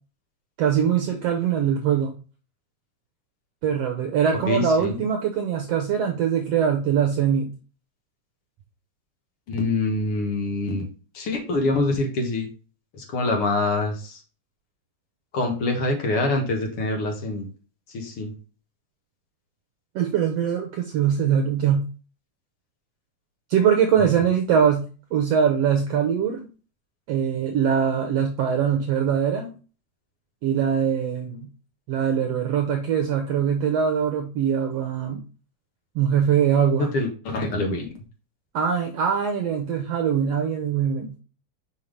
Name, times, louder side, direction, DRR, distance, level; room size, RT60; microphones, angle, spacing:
voice 1, 0.6-2.1 3.6-7.5 19.9-21.9 23.5-24.9 25.1-26.5 27.1-29.5 30.4-31.5 31.9-35.2 35.9-36.9 38.5-41.1, right 8 dB, 70° right, 4 dB, 1.7 m, -22 dB
voice 2, 4.5-5.0 9.5-10.9 11.1-12.5 12.9-14.2 15.3-17.5 17.9-18.3 36.9-37.9, left 2 dB, 55° left, 2 dB, 2.0 m, -25 dB
5.7 x 5.5 x 3.3 m, 0.35 s
omnidirectional pair, 3.6 m